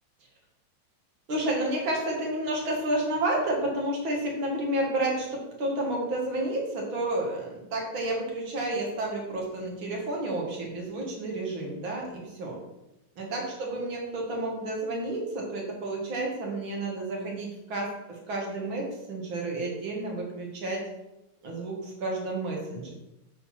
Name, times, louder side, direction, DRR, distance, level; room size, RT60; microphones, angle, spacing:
voice 1, 1.3-12.6 13.2-20.8 21.4-22.9, right 1 dB, 70° right, -1 dB, 2.8 m, -31 dB
8.2 x 5.0 x 5.9 m, 0.93 s
omnidirectional pair, 2.2 m